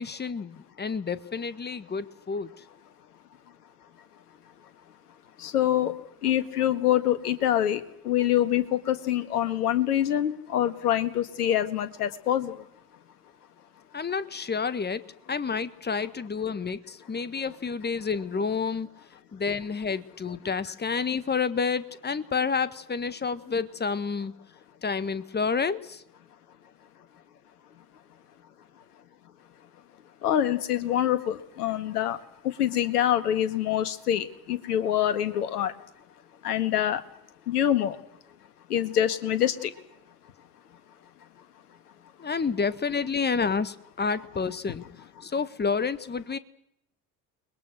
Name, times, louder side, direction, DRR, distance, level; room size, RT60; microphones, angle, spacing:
voice 1, 0.0-2.5 13.9-18.9 19.3-24.3 24.8-26.0 42.2-44.8 45.2-46.4, left 5 dB, 20° left, 15 dB, 1.6 m, -29 dB
voice 2, 5.4-5.9 6.2-12.5 30.2-32.2 32.6-35.7 36.4-37.0 37.5-38.0 38.7-39.7, left 11 dB, 70° left, 13 dB, 1.8 m, -25 dB
30.0 x 21.5 x 6.4 m, 0.76 s
figure-of-eight pair, 60°, 48 cm